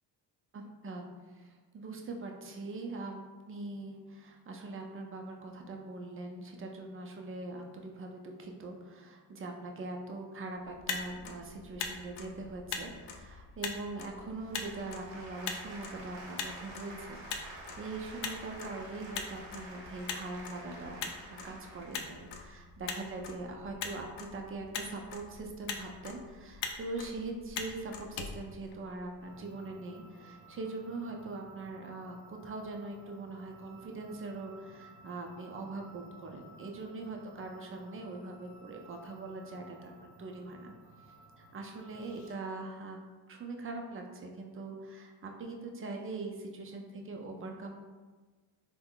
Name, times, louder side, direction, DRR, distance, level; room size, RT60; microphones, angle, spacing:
voice 1, 0.5-40.7 41.4-43.0 43.3-47.8, right 2 dB, 25° right, 2 dB, 0.5 m, -42 dB
Motor vehicle (road), 10.6-29.2, left 5 dB, 55° left, 0.5 m, -43 dB
sound 1, 14.3-22.3, right 2 dB, 65° right, 0.8 m, -49 dB
sound 2, 29.2-42.3, right 2 dB, 35° left, 1.1 m, -56 dB
3.5 x 2.2 x 2.3 m, 1.4 s
supercardioid pair, 50°, 50 cm